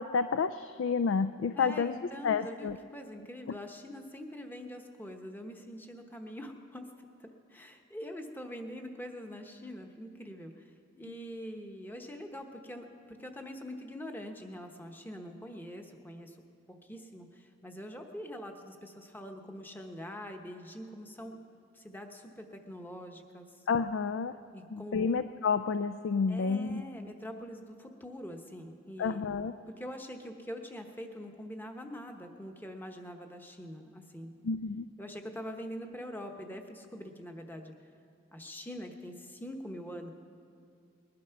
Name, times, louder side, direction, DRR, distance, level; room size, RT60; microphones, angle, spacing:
voice 1, 0.0-1.9 2.2-2.8 3.5-3.6 23.7-24.3 24.7-26.8 29.0-29.5 34.4-34.9, left 5 dB, 60° left, 11 dB, 0.4 m, -30 dB
voice 2, 1.6-10.7 10.9-16.4 16.8-21.4 21.7-23.5 24.5-25.1 26.3-29.3 29.7-34.3 35.0-37.7 38.3-40.1, equal, 10° left, 4 dB, 0.9 m, -44 dB
20.5 x 11.5 x 5.8 m, 2.4 s
head